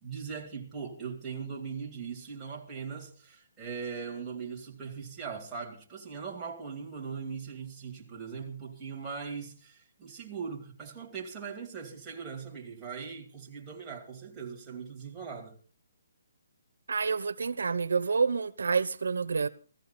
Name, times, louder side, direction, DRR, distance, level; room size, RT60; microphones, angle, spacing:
voice 1, 0.0-15.6, right 6 dB, 5° right, 2.4 m, -40 dB
voice 2, 16.9-19.5, right 5 dB, 85° right, 1.0 m, -28 dB
17.0 x 14.5 x 4.3 m
hypercardioid pair, 175°, 0 cm